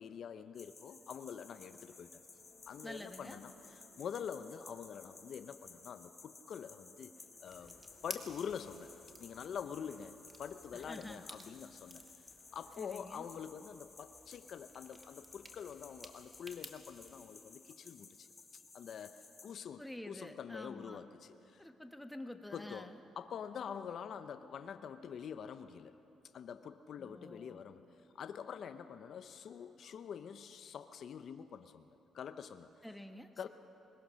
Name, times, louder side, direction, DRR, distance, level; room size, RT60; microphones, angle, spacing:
voice 1, 0.0-2.2 2.7-7.1 7.4-7.8 8.0-8.9 9.2-12.0 12.5-18.3 18.7-21.6 22.5-25.9 26.3-27.8 28.1-31.9 32.1-32.7 33.4-33.5, left 7 dB, 60° left, 10 dB, 0.7 m, -46 dB
sound 1, 0.5-19.5, left 4 dB, 30° left, 1.9 m, -57 dB
sound 2, 1.3-13.0, left 4 dB, 90° left, 2.8 m, -68 dB
voice 2, 2.8-3.4 10.7-11.2 12.8-13.3 19.8-21.1 21.6-23.0 27.0-27.6 32.8-33.5, left 1 dB, 5° left, 6 dB, 1.3 m, -49 dB
sound 3, 7.5-17.2, right 2 dB, 20° right, 1.7 m, -55 dB
21.5 x 21.0 x 6.4 m, 2.9 s
cardioid pair, 90°, 0 cm